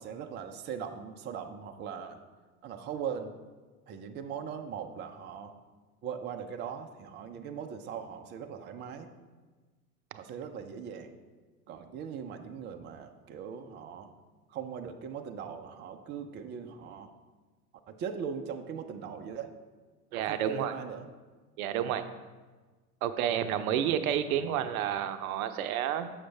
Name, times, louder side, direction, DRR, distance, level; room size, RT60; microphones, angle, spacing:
voice 1, 0.0-2.2 2.6-3.3 3.9-5.5 6.0-9.1 10.1-11.1 11.7-14.1 14.5-17.1 17.9-19.5 20.1-21.1, right 7 dB, 25° right, 5 dB, 0.5 m, -40 dB
voice 2, 20.1-20.7 21.6-22.1 23.0-26.1, right 10 dB, 65° right, 10 dB, 0.6 m, -30 dB
7.2 x 6.2 x 3.4 m, 1.3 s
hypercardioid pair, 90°, 47 cm